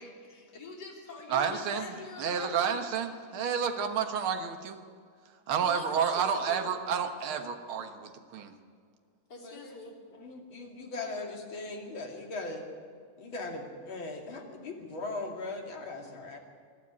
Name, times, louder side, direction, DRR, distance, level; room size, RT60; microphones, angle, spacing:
voice 1, 0.0-2.9 5.6-6.7 9.3-9.9, left 3 dB, 45° left, -1 dB, 3.7 m, -45 dB
voice 2, 1.3-1.9 2.2-4.8 5.5-8.6, right 7 dB, 70° right, 6 dB, 2.1 m, -30 dB
voice 3, 9.4-9.8 10.2-12.6 13.2-16.4, left 2 dB, 65° left, 1 dB, 3.3 m, -39 dB
23.0 x 12.5 x 9.7 m, 2.1 s
omnidirectional pair, 2.4 m